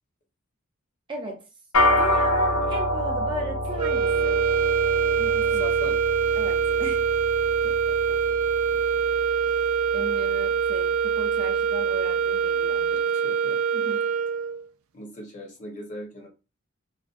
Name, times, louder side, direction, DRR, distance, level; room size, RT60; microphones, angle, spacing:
voice 1, 1.1-1.5 2.0-4.4 5.2-5.7 6.3-7.1 7.6-8.2 9.9-12.9 13.7-14.1, right 2 dB, 25° right, 0.5 m, -37 dB
sound 1, 1.7-11.3, left 1 dB, 80° left, 0.6 m, -28 dB
sound 2, 3.8-14.6, right 6 dB, 85° right, 0.3 m, -24 dB
voice 2, 5.6-6.0 8.7-9.0 9.4-9.8 12.9-13.6 14.9-16.3, left 1 dB, 40° left, 0.8 m, -40 dB
2.4 x 2.2 x 2.4 m
head